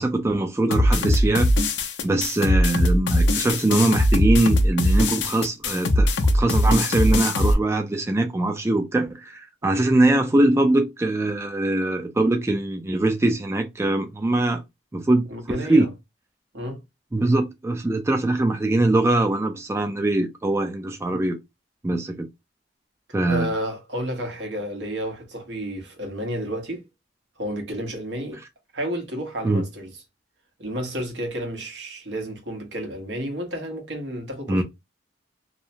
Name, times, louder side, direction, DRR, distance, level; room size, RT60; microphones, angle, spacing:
voice 1, 0.0-1.5 2.0-14.6 14.9-15.9 17.1-21.4 21.8-22.3 23.1-23.5 29.4-29.6 34.5-34.6, right 2 dB, 15° right, 0.3 m, -22 dB
sound 1, 0.7-7.5, left 1 dB, 75° left, 0.5 m, -20 dB
voice 2, 15.3-15.9 16.5-16.8 23.3-26.8 27.4-28.4 28.7-29.9 30.6-34.6, equal, 80° right, 1.0 m, -31 dB
2.7 x 2.0 x 2.7 m
head